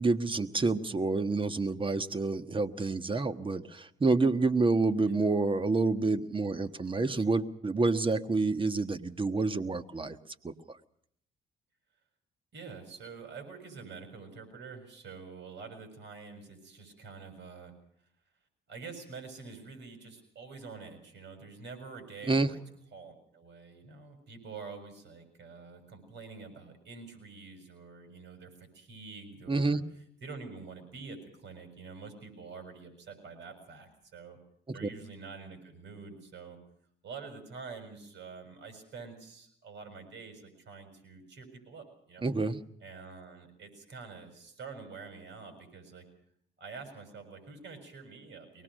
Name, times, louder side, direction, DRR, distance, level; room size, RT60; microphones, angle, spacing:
voice 1, 0.0-10.2 10.4-10.5 22.3-22.5 29.5-29.8 42.2-42.6, right 3 dB, 25° right, 9 dB, 1.4 m, -28 dB
voice 2, 12.5-17.7 18.7-22.6 22.9-34.4 34.7-36.6 37.0-42.3 42.8-46.1 46.6-48.6, right 4 dB, 65° right, 7 dB, 6.9 m, -47 dB
23.5 x 19.0 x 6.4 m, 0.68 s
cardioid pair, 90°, 20 cm